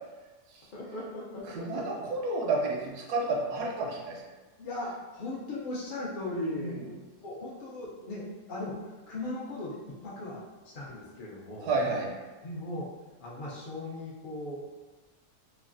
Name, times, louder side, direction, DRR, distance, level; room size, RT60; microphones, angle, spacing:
voice 1, 0.7-2.0 4.6-9.8 10.0-11.7 12.4-12.9 13.2-14.7, left 2 dB, 75° left, -5 dB, 0.4 m, -38 dB
voice 2, 1.5-4.2 6.6-6.7 11.7-12.1, right 3 dB, 80° right, -1 dB, 1.1 m, -30 dB
3.2 x 2.3 x 2.5 m, 1.2 s
omnidirectional pair, 1.7 m